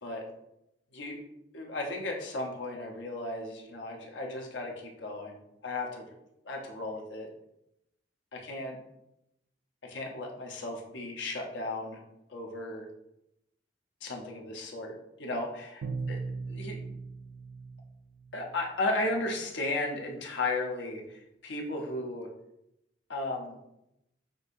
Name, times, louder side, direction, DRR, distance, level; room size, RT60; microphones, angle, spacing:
voice 1, 1.5-5.4 5.6-6.0 6.4-7.3 8.3-8.7 9.8-12.0 12.3-12.9 14.0-16.2 16.5-16.9 18.3-22.3 23.1-23.6, left 2 dB, 80° left, 0 dB, 0.8 m, -35 dB
Bowed string instrument, 15.8-18.6, right 4 dB, 85° right, 0.4 m, -38 dB
6.1 x 2.7 x 2.6 m, 0.84 s
head